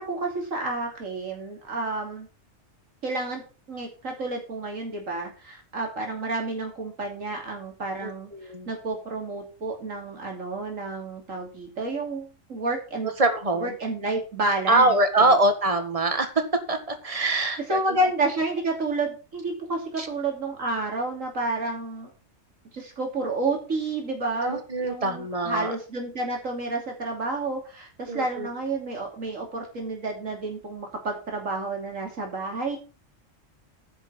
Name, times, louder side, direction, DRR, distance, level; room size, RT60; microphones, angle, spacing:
voice 1, 0.0-2.3 3.0-3.4 3.7-13.1 13.6-15.4 17.7-22.1 22.7-32.8, right 2 dB, 90° right, 1 dB, 3.3 m, -30 dB
voice 2, 8.0-8.7 13.2-13.7 14.7-16.4 16.7-18.0 20.0-20.1 24.4-25.7 28.1-28.5, right 2 dB, 30° right, 8 dB, 1.7 m, -24 dB
10.0 x 6.0 x 7.4 m, 0.35 s
omnidirectional pair, 1.3 m